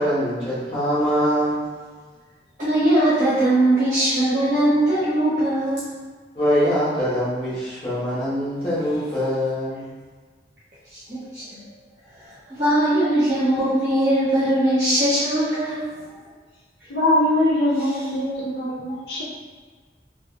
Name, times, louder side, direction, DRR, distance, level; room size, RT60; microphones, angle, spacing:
voice 1, 0.0-1.6 6.3-9.9, equal, 30° left, -12 dB, 0.8 m, -23 dB
voice 2, 2.6-5.9 10.9-11.6 12.5-15.8, right 1 dB, 50° right, -11 dB, 0.8 m, -20 dB
voice 3, 16.9-19.2, left 1 dB, 75° left, -6 dB, 0.9 m, -22 dB
3.3 x 2.2 x 2.2 m, 1.5 s
head